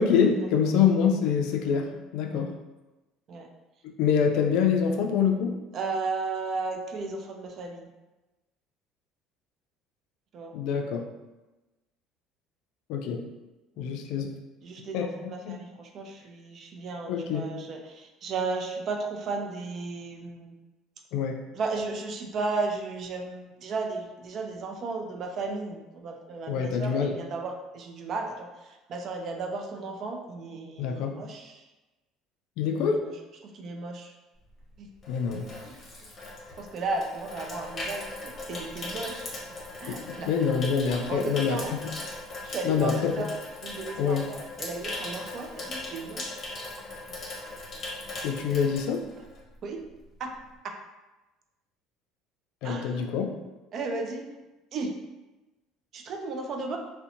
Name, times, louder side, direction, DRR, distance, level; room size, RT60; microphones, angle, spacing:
voice 1, 0.0-2.5 3.8-5.5 10.5-11.0 12.9-13.2 13.8-14.3 14.9-15.6 17.1-17.5 21.1-21.4 26.5-27.1 30.8-31.2 32.6-33.0 35.1-35.5 39.9-41.9 42.6-43.3 44.0-44.2 48.2-49.0 52.6-53.3, left 6 dB, 75° left, 3 dB, 0.3 m, -26 dB
voice 2, 5.7-7.9 10.3-10.6 13.8-14.0 14.6-20.6 21.5-31.6 32.9-33.1 33.4-34.1 34.8-34.9 35.3-35.7 36.6-39.3 39.8-40.3 40.9-41.7 42.4-43.3 43.6-46.4 49.6-49.8 50.2-50.3 52.6-53.1 53.7-54.2 54.7-54.9 55.9-56.8, right 3 dB, 50° right, 3 dB, 0.4 m, -34 dB
Water tap faucet / Sink (filling or washing), 34.5-49.6 49.8-50.1, left 2 dB, 35° left, 0.7 m, -39 dB
2.6 x 2.1 x 2.5 m, 1.1 s
cardioid pair, 110°, 0 cm